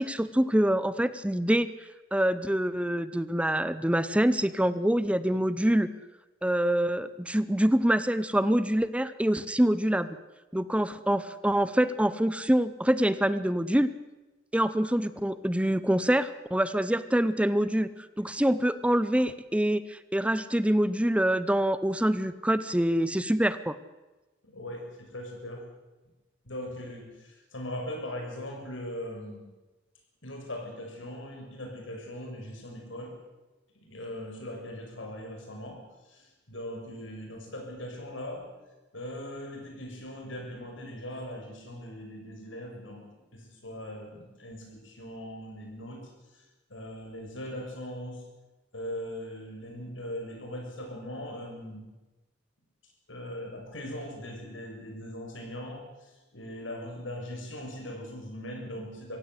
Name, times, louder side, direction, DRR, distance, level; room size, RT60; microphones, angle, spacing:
voice 1, 0.0-5.9 6.4-10.1 10.5-13.9 14.5-23.8, right 1 dB, 5° right, 14 dB, 0.7 m, -25 dB
voice 2, 24.4-25.6 26.4-29.5 30.2-33.2 33.8-38.5 38.9-46.4 46.7-48.2 48.7-51.9 53.1-59.2, left 1 dB, 90° left, 2 dB, 6.9 m, -40 dB
24.0 x 16.5 x 8.2 m, 1.1 s
head